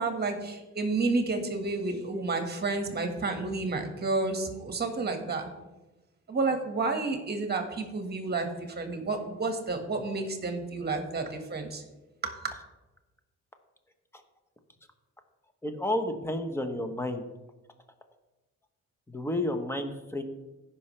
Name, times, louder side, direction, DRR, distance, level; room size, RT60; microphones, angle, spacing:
voice 1, 0.0-5.5 6.3-11.8 12.2-12.5, right 3 dB, 35° right, 5 dB, 1.6 m, -30 dB
voice 2, 15.6-17.3 19.1-20.2, left 1 dB, 10° left, 6 dB, 1.1 m, -31 dB
15.5 x 5.8 x 3.3 m, 1.1 s
cardioid pair, 90°, 30 cm